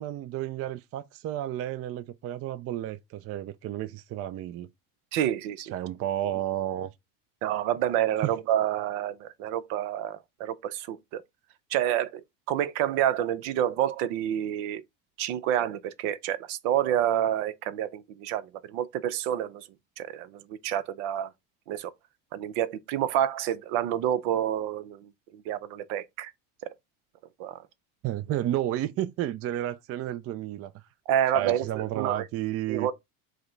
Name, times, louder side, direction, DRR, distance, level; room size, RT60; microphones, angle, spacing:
voice 1, 0.0-4.7 5.7-6.9 8.2-8.3 28.0-30.7 31.3-32.9, right 12 dB, 35° right, 0.4 m, -31 dB
voice 2, 5.1-5.7 7.4-11.2 11.7-14.8 15.2-19.7 20.0-21.3 21.7-21.9 22.3-26.3 27.4-27.6 31.1-32.3 32.7-32.9, right 11 dB, 75° right, 0.7 m, -28 dB
4.9 x 2.1 x 3.8 m
supercardioid pair, 90°, 43 cm